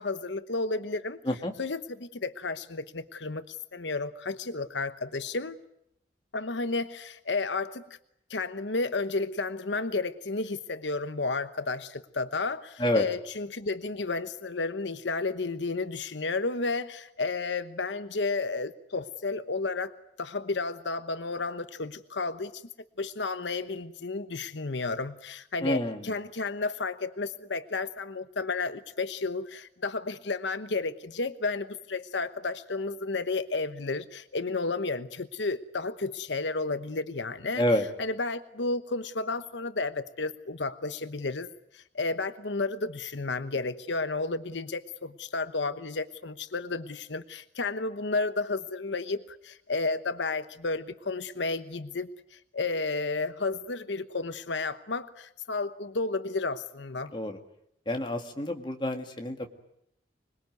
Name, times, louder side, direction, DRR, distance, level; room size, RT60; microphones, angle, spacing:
voice 1, 0.0-1.2 1.6-5.6 6.3-7.8 8.3-22.6 23.0-37.6 38.0-41.5 41.7-57.1, left 3 dB, 80° left, 11 dB, 1.0 m, -32 dB
voice 2, 25.6-26.1 37.5-37.9 57.1-57.4 57.9-59.5, left 1 dB, 25° left, 4 dB, 2.1 m, -28 dB
26.0 x 21.0 x 9.4 m, 0.78 s
head